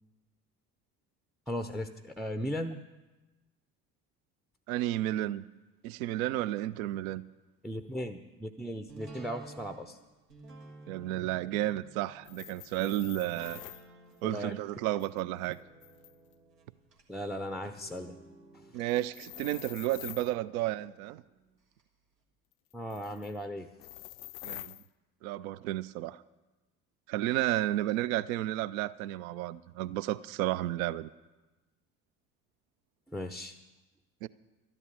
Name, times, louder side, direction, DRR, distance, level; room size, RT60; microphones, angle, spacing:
voice 1, 1.5-2.8 7.6-10.0 14.2-14.5 17.1-18.2 22.7-23.7 33.1-33.5, equal, ahead, 9 dB, 0.5 m, -37 dB
voice 2, 4.7-5.4 5.8-7.2 10.9-13.6 14.2-15.6 18.7-21.2 24.4-24.7 25.2-26.2 27.1-31.1 34.2-34.3, right 14 dB, 60° right, 18 dB, 0.6 m, -32 dB
sound 1, 8.9-21.8 22.2-22.3, right 3 dB, 85° right, 1.6 m, -54 dB
sound 2, 12.2-13.9 15.0-16.3 18.9-20.3 22.7-23.4 23.8-24.9, left 19 dB, 60° left, 0.5 m, -46 dB
12.5 x 11.0 x 6.8 m, 1.1 s
figure-of-eight pair, 60°, 47 cm